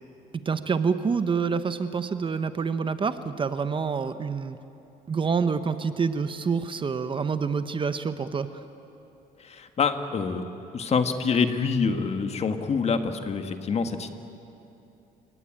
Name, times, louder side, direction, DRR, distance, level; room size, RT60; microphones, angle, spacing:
voice 1, 0.4-4.6 5.1-8.5, right 5 dB, 30° right, 11 dB, 1.0 m, -27 dB
voice 2, 9.4-10.5 10.7-14.1, left 5 dB, 40° left, 7 dB, 1.8 m, -26 dB
29.5 x 18.0 x 9.0 m, 2.8 s
cardioid pair, 110°, 17 cm